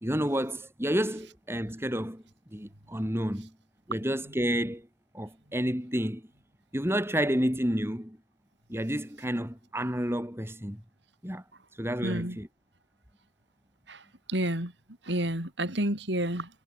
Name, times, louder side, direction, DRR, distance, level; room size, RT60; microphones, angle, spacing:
voice 1, 0.0-2.2 2.5-3.5 3.9-4.9 5.1-6.2 6.7-8.2 8.7-10.8 11.2-11.4 11.8-12.5, equal, 15° right, 4.5 m, -30 dB
voice 2, 12.0-12.4 13.9-14.0 14.3-14.7 15.1-16.5, right 1 dB, 65° right, 6.5 m, -29 dB
head